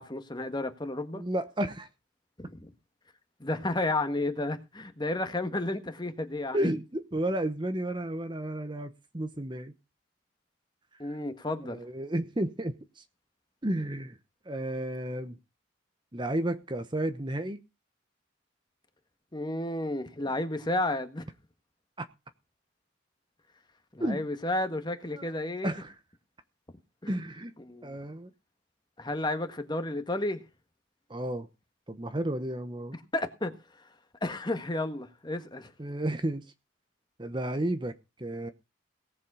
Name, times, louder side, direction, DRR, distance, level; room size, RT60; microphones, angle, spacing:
voice 1, 0.0-1.2 2.4-2.7 3.4-6.7 11.0-11.8 19.3-21.2 23.9-25.7 27.0-27.1 27.7-28.0 29.0-30.4 33.1-33.5 34.2-35.7, left 2 dB, 25° left, 1.6 m, -32 dB
voice 2, 1.1-1.9 6.5-9.7 11.0-11.2 11.6-13.0 13.6-14.2 14.5-15.4 16.1-17.6 22.0-22.1 24.0-24.2 25.1-25.3 25.6-25.9 27.1-27.5 27.8-28.3 31.1-31.5 31.9-33.0 35.8-36.4 37.2-37.9 38.2-38.5, right 1 dB, 25° right, 1.0 m, -32 dB
18.0 x 7.5 x 5.6 m
head